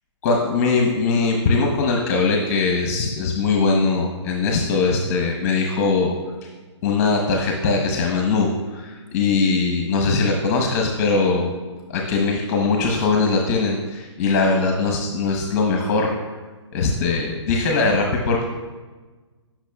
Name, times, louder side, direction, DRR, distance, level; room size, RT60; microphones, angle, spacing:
voice 1, 0.2-6.2 6.8-11.6 11.9-16.1 16.7-18.5, left 4 dB, 30° left, 1 dB, 0.9 m, -21 dB
10.5 x 5.9 x 2.3 m, 1.3 s
hypercardioid pair, 145°, 15 cm